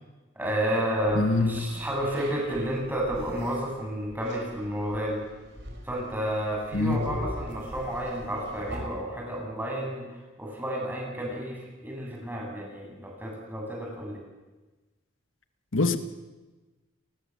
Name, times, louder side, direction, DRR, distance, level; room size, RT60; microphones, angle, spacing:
voice 1, 0.3-5.2 5.8-10.1 10.4-14.2, equal, 10° right, 7.8 m, -31 dB
voice 2, 1.1-1.6 6.7-7.1 15.7-16.0, left 3 dB, 80° left, 1.5 m, -25 dB
sound 1, 1.1-8.9, equal, 60° right, 6.2 m, -42 dB
29.5 x 20.0 x 7.5 m
head